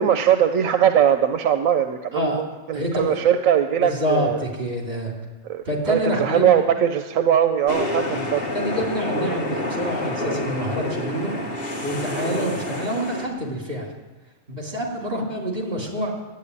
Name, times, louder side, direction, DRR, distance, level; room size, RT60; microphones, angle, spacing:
voice 1, 0.0-4.4 5.5-8.4 12.3-12.5, right 9 dB, 90° right, 8 dB, 1.1 m, -20 dB
voice 2, 2.7-3.2 3.8-5.1 5.7-6.7 8.1-11.3 11.8-13.9 14.5-16.1, equal, 50° right, -2 dB, 3.7 m, -27 dB
sound 1, 7.7-13.3, left 1 dB, 45° left, 1.8 m, -28 dB
11.5 x 9.2 x 9.8 m, 1.2 s
omnidirectional pair, 1.4 m